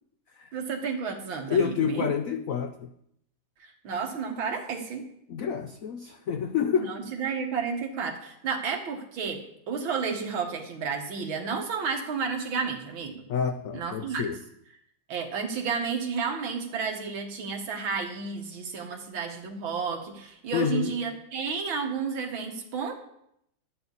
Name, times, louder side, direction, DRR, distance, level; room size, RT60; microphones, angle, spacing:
voice 1, 0.5-2.1 3.6-5.1 6.7-13.2 13.7-14.3 15.1-22.9, right 5 dB, 80° right, 3 dB, 2.2 m, -32 dB
voice 2, 1.5-2.9 5.3-6.9 13.3-14.4 20.5-20.9, left 7 dB, 85° left, 8 dB, 0.7 m, -28 dB
12.0 x 10.0 x 4.0 m, 0.76 s
omnidirectional pair, 2.1 m